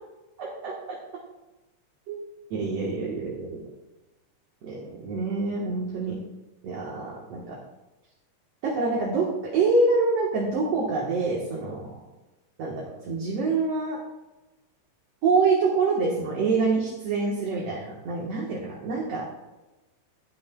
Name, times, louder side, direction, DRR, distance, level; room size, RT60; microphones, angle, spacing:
voice 1, 0.4-0.7 2.1-2.2 2.5-3.7 4.6-6.2 6.6-7.6 8.6-11.9 12.6-14.0 15.2-19.3, right 3 dB, 55° right, -3 dB, 2.2 m, -26 dB
19.0 x 6.5 x 2.3 m, 1.1 s
omnidirectional pair, 3.8 m